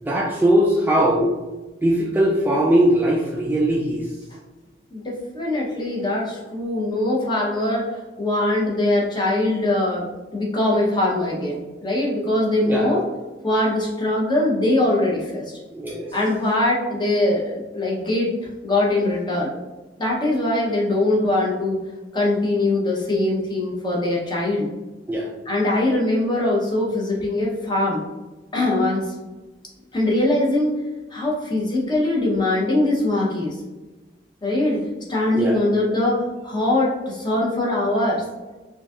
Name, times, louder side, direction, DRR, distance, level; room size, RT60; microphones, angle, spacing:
voice 1, 0.0-1.4 1.8-4.1 12.7-12.9 15.7-16.1 25.1-25.3 35.3-35.6, right 1 dB, 10° right, -3 dB, 0.3 m, -20 dB
voice 2, 4.9-13.0 13.4-15.4 16.1-18.3 18.6-19.5 20.0-21.9 22.1-24.7 25.5-28.0 28.5-29.1 29.9-30.8 31.1-33.6 34.4-34.8 35.1-36.2 36.4-38.2, left 1 dB, 25° left, -4 dB, 0.8 m, -22 dB
3.8 x 2.6 x 2.3 m, 1.2 s
head